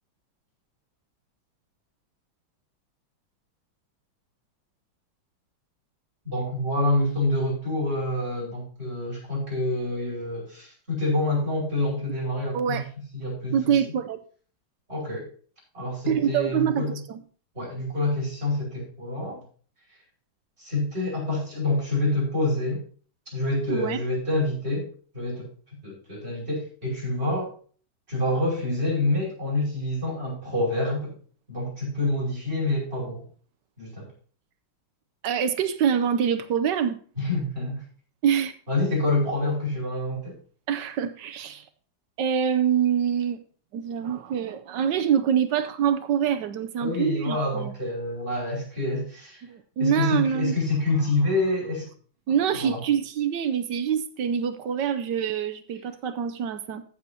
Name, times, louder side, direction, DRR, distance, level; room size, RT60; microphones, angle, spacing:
voice 1, 6.2-12.8 13.1-13.7 14.9-15.3 15.7-17.0 17.5-19.4 20.6-22.8 23.3-24.9 25.1-25.5 25.8-27.5 28.1-31.1 31.5-33.3 33.8-34.1 37.2-37.8 38.7-40.4 46.8-49.4 49.8-51.9 52.5-52.8, left 2 dB, 30° right, -5 dB, 5.7 m, -27 dB
voice 2, 12.5-12.8 13.5-14.2 16.1-17.2 23.7-24.0 35.2-37.0 38.2-38.5 40.7-41.6 42.2-43.4 43.7-47.7 49.4-50.6 52.3-56.8, right 8 dB, 70° right, 10 dB, 1.2 m, -25 dB
14.5 x 7.7 x 2.8 m, 0.43 s
omnidirectional pair, 2.2 m